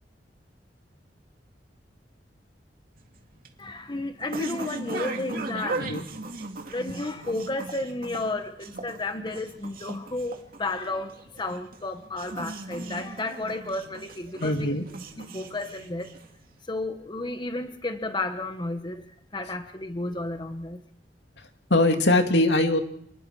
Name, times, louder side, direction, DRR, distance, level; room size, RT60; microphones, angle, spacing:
sound 1, 3.0-16.5, right 2 dB, 55° right, 2.4 m, -38 dB
voice 1, 3.6-5.9 6.7-14.7 15.2-16.1 16.7-19.0 19.3-20.8, left 2 dB, 25° left, 7 dB, 1.2 m, -32 dB
voice 2, 14.4-14.8 21.7-22.8, left 2 dB, 80° left, 5 dB, 2.4 m, -22 dB
28.5 x 20.5 x 4.8 m, 0.69 s
head